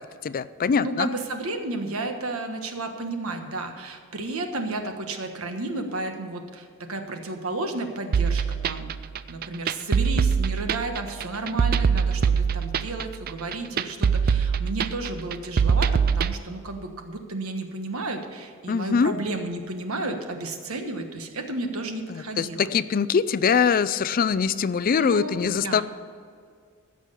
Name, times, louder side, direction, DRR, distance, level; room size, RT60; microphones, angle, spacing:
voice 1, 0.2-1.1 18.7-19.1 22.4-25.8, left 6 dB, 45° left, 16 dB, 0.4 m, -23 dB
voice 2, 0.8-22.7 25.0-25.8, right 2 dB, 90° right, 5 dB, 1.3 m, -32 dB
sound 1, 8.1-16.3, right 6 dB, 45° right, 0.4 m, -23 dB
15.0 x 6.2 x 6.9 m, 2.2 s
head